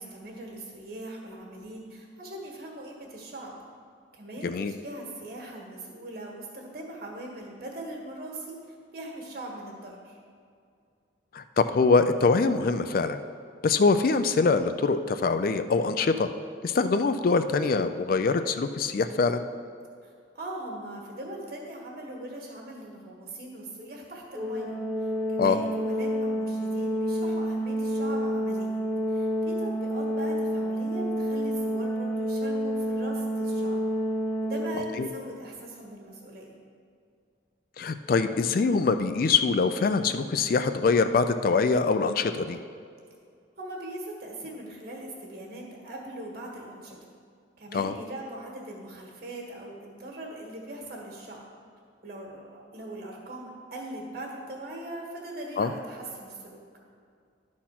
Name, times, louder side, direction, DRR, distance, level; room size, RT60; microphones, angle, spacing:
voice 1, 0.0-3.5 4.1-8.5 8.9-10.2 20.0-28.8 29.1-33.8 34.4-36.6 43.6-47.0 47.6-51.4 52.0-56.6, right 1 dB, 55° right, -1 dB, 1.7 m, -40 dB
voice 2, 11.3-13.2 13.6-16.3 16.6-19.4 25.4-25.6 35.0-35.1 37.8-42.6 47.7-47.9 55.6-55.7, left 4 dB, 50° left, 10 dB, 0.3 m, -24 dB
Organ, 24.3-35.2, equal, 5° right, 1.0 m, -29 dB
11.5 x 4.3 x 5.8 m, 2.3 s
head